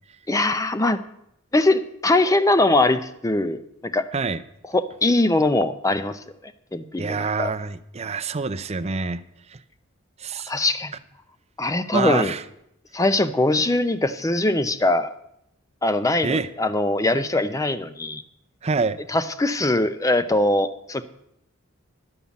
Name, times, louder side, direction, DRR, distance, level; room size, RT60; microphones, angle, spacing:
voice 1, 0.3-1.0 1.5-4.1 4.7-6.2 6.7-7.5 10.5-10.9 11.6-12.3 12.9-15.1 15.8-18.2 19.1-21.0, left 2 dB, 15° left, 12 dB, 0.5 m, -21 dB
voice 2, 7.0-9.2 9.5-9.6 10.2-10.5 11.9-12.4 16.2-16.5 18.6-19.0, right 4 dB, 30° right, 10 dB, 0.5 m, -26 dB
11.5 x 5.6 x 8.4 m, 0.78 s
head